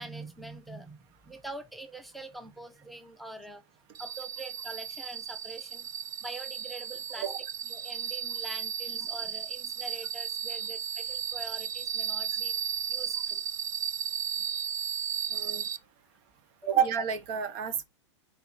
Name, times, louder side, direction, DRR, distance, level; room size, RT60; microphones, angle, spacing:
voice 1, 0.0-3.6 4.0-5.9 6.2-7.4 7.7-12.6 12.9-13.4 14.4-14.5 16.6-16.8, right 2 dB, ahead, 0.8 m, -44 dB
sound 1, 3.9-15.8, right 8 dB, 25° right, 0.5 m, -34 dB
voice 2, 15.3-15.6 16.7-17.8, right 8 dB, 45° right, 1.1 m, -29 dB
4.6 x 4.4 x 5.1 m
hypercardioid pair, 105°, 15 cm